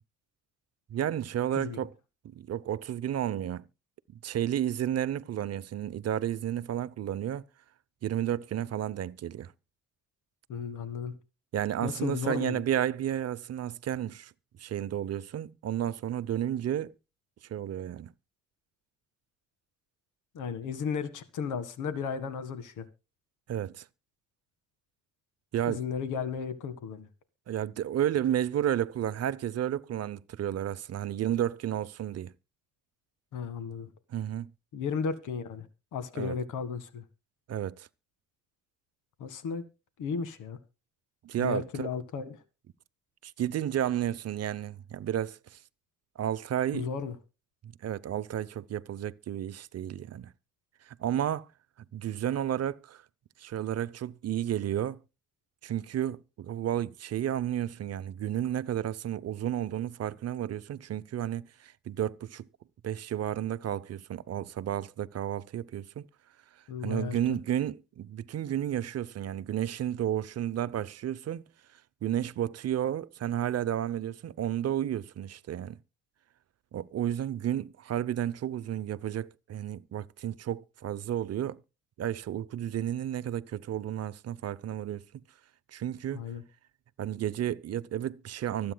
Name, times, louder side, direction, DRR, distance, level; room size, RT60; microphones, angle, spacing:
voice 1, 0.9-1.9 2.2-3.7 4.2-7.4 8.0-9.5 11.5-14.3 14.6-16.9 17.5-18.1 23.5-23.8 25.5-25.8 27.5-32.3 34.1-34.5 36.1-36.3 37.5-37.9 41.2-41.9 43.2-45.6 46.2-46.9 47.8-50.3 50.9-51.5 51.9-53.0 53.4-55.0 55.6-62.5 62.8-66.1 66.8-71.5 72.0-75.8 76.7-81.6 82.0-85.0 85.7-86.2 87.0-88.7, right 11 dB, 55° right, 0.7 m, -32 dB
voice 2, 10.5-11.1 11.8-12.6 20.3-22.9 25.7-27.1 33.3-33.9 34.7-35.7 35.9-37.0 39.2-39.6 40.0-40.6 41.4-42.4 46.7-47.1 66.7-67.2 86.1-86.4, left 6 dB, 85° left, 1.8 m, -34 dB
24.5 x 8.7 x 2.2 m
cardioid pair, 90°, 30 cm